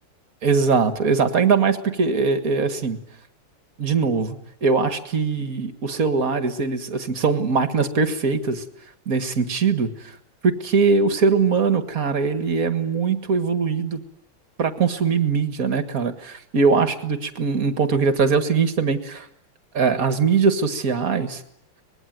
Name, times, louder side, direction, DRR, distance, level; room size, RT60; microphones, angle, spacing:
voice 1, 0.4-3.0 3.8-4.4 4.6-8.6 9.1-10.1 10.4-14.0 14.6-19.3 19.7-21.4, right 5 dB, 45° right, 9 dB, 2.0 m, -21 dB
24.5 x 21.0 x 9.4 m, 0.75 s
omnidirectional pair, 2.3 m